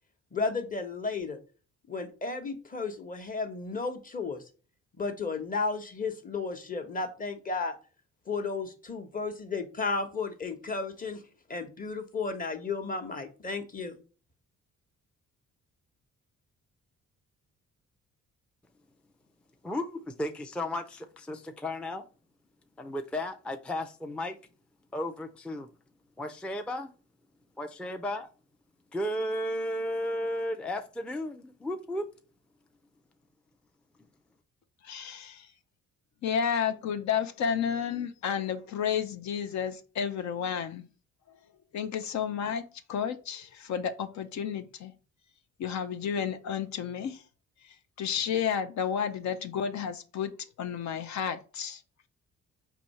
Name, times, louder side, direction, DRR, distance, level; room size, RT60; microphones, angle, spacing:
voice 1, 0.3-1.4 1.9-4.4 5.0-7.8 8.3-11.2 11.5-14.0, left 4 dB, 30° left, 1.0 m, -33 dB
voice 2, 19.6-22.1 22.8-24.4 24.9-25.7 26.2-26.9 27.6-28.3 28.9-32.0, left 1 dB, 5° left, 0.4 m, -34 dB
voice 3, 34.8-35.5 36.2-40.8 41.7-44.9 45.6-47.2 48.0-51.8, left 7 dB, 65° left, 0.6 m, -31 dB
4.3 x 2.8 x 4.2 m
cardioid pair, 90°, 30 cm